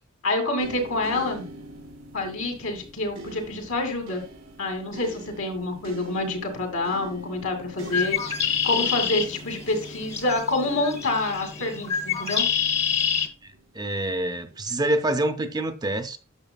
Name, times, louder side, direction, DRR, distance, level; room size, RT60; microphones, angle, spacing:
voice 1, 0.2-1.5 2.1-4.2 4.6-12.4, left 2 dB, 70° left, 2.4 m, -27 dB
sound 1, 0.6-13.7 14.5-14.7, right 2 dB, 85° right, 2.4 m, -44 dB
Bird, 7.8-13.3, left 7 dB, 30° left, 1.1 m, -27 dB
voice 2, 13.4-16.2, right 1 dB, 20° right, 0.6 m, -27 dB
10.5 x 6.8 x 2.2 m
head